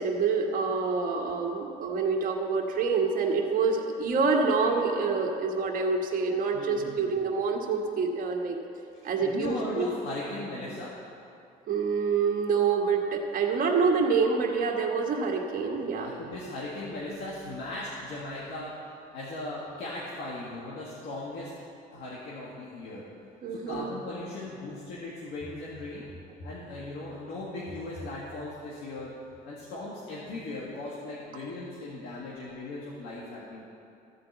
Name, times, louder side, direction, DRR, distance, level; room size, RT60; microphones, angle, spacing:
voice 1, 0.0-8.6 9.0-9.9 11.7-16.1 23.4-23.9, right 5 dB, 55° right, 1 dB, 1.5 m, -27 dB
voice 2, 6.5-7.1 8.9-10.9 15.8-18.7 19.1-21.5 21.9-23.1 23.5-26.1 26.4-29.2 29.5-33.6, left 2 dB, 85° left, -6 dB, 1.7 m, -38 dB
13.5 x 4.8 x 7.8 m, 2.6 s
cardioid pair, 110°, 17 cm